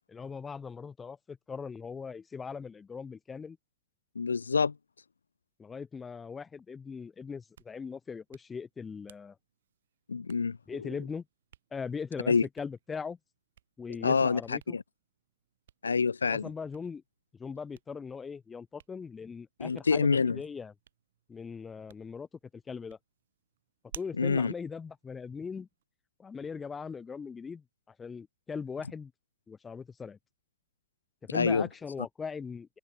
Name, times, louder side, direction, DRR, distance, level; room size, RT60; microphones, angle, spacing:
voice 1, 0.1-3.6 5.6-9.4 10.7-11.2 11.7-13.2 13.8-14.8 16.2-17.0 17.4-20.7 21.3-22.3 22.5-23.0 23.9-25.7 26.2-27.6 28.0-29.1 29.5-30.2 31.2-32.8, left 5 dB, 15° left, 1.5 m, -40 dB
voice 2, 4.2-4.7 10.1-10.6 12.3-12.5 14.0-14.8 15.8-16.5 19.6-20.4 24.2-24.5 31.3-31.7, left 5 dB, 75° left, 0.5 m, -26 dB
Hands, 7.3-25.8, right 11 dB, 60° right, 5.6 m, -58 dB
open air
figure-of-eight pair, 90°, 0 cm